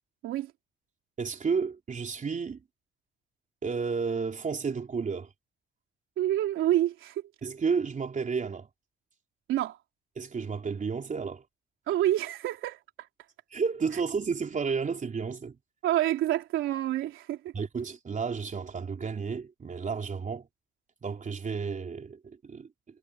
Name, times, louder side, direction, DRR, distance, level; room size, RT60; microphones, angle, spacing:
voice 1, 1.2-2.6 3.6-5.3 7.4-8.7 10.2-11.4 13.5-15.6 17.5-20.5 21.0-22.7, right 5 dB, 40° right, 3.7 m, -32 dB
voice 2, 6.2-7.2 9.5-9.8 11.9-12.8 15.8-17.5, right 13 dB, 90° right, 3.4 m, -27 dB
cardioid pair, 90°, 20 cm